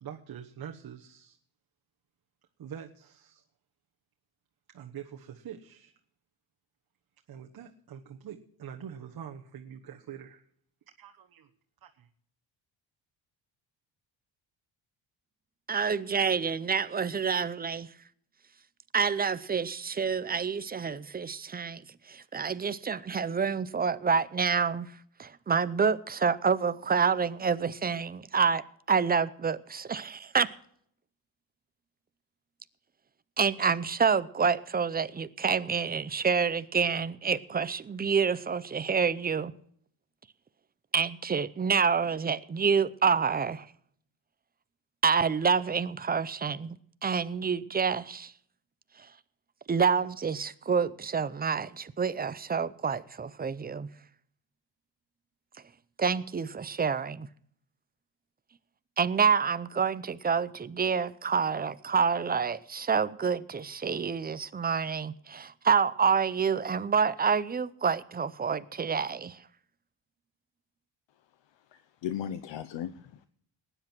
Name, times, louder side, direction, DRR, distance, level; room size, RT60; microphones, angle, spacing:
voice 1, 0.0-1.4 2.6-3.4 4.7-5.9 7.3-10.4 11.0-11.5 11.8-12.1, right 8 dB, 50° right, 1.3 m, -45 dB
voice 2, 15.7-17.9 18.9-21.8 22.1-24.9 25.2-30.5 33.4-39.5 40.9-43.7 45.0-46.8 47.0-48.3 49.0-49.1 49.7-53.9 56.0-57.3 59.0-69.4, right 6 dB, 20° right, 0.5 m, -28 dB
voice 3, 71.7-73.3, left 10 dB, 70° left, 0.9 m, -37 dB
19.0 x 9.9 x 4.4 m
cardioid pair, 135°, 45 cm